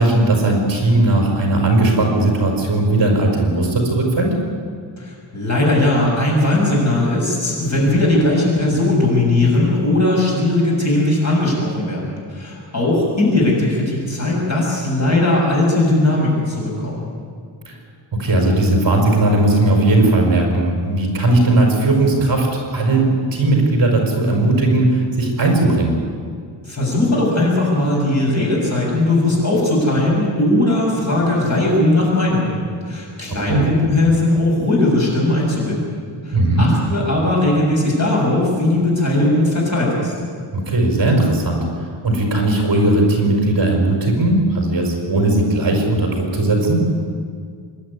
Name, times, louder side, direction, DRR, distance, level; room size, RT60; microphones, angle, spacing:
voice 1, 0.0-4.3 18.1-22.5 22.7-25.9 33.5-33.6 36.3-36.7 40.5-41.6 42.0-46.8, right 2 dB, 45° right, 1 dB, 4.8 m, -17 dB
voice 2, 5.0-17.1 26.6-40.1, left 2 dB, 35° left, -3 dB, 6.8 m, -18 dB
25.5 x 11.5 x 9.8 m, 2.1 s
wide cardioid pair, 175°, 46 cm